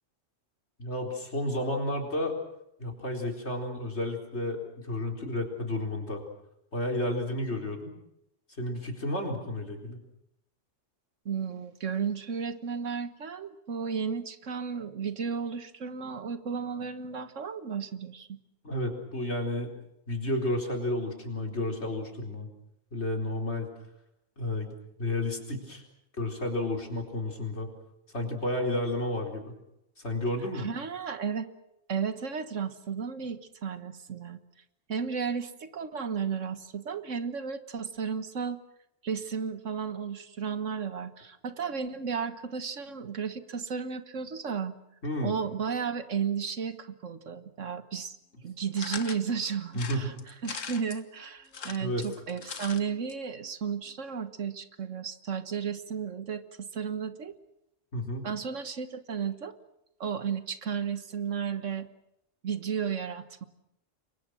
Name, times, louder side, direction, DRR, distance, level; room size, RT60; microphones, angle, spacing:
voice 1, 0.8-2.4 2.8-6.2 6.7-7.9 8.6-10.0 18.6-19.7 20.1-22.5 22.9-23.7 24.4-24.7 25.0-25.8 26.2-27.7 28.1-29.5 30.0-30.7 45.0-45.3 49.7-50.1 51.8-52.1 57.9-58.3, left 1 dB, 60° left, 3 dB, 4.6 m, -31 dB
voice 2, 11.3-18.4 30.5-31.5 31.9-34.4 34.9-38.6 39.0-44.8 45.2-48.2 48.4-50.1 50.4-57.4 58.2-59.5 60.0-61.9 62.4-63.4, right 6 dB, 80° right, 11 dB, 1.8 m, -33 dB
sound 1, 48.8-49.2 49.7-51.0 51.5-52.8 53.1-53.2 53.4-53.5, left 6 dB, 90° left, 1.8 m, -40 dB
28.5 x 23.5 x 6.3 m, 0.81 s
omnidirectional pair, 1.3 m